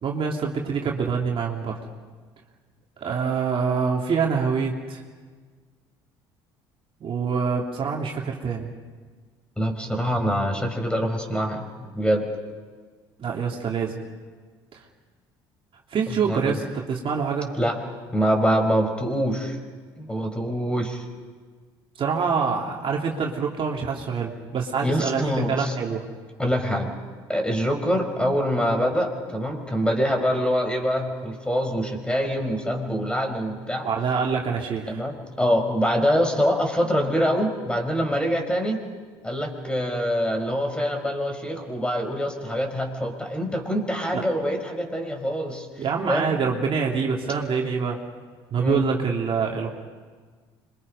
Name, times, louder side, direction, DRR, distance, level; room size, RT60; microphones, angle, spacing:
voice 1, 0.0-1.8 3.0-5.0 7.0-8.7 13.2-13.9 15.9-17.5 22.0-26.0 33.8-35.0 44.1-44.2 45.8-48.0 48.5-49.7, right 6 dB, 45° right, -1 dB, 2.8 m, -25 dB
voice 2, 9.6-11.6 11.9-12.3 16.1-16.6 17.6-17.8 18.1-19.6 20.0-21.0 24.8-25.7 26.4-26.9 27.3-33.9 34.9-38.8 39.2-45.7 46.1-46.3 48.6-48.9, equal, 10° left, 4 dB, 4.7 m, -25 dB
26.0 x 23.5 x 5.5 m, 1.5 s
hypercardioid pair, 70°, 12 cm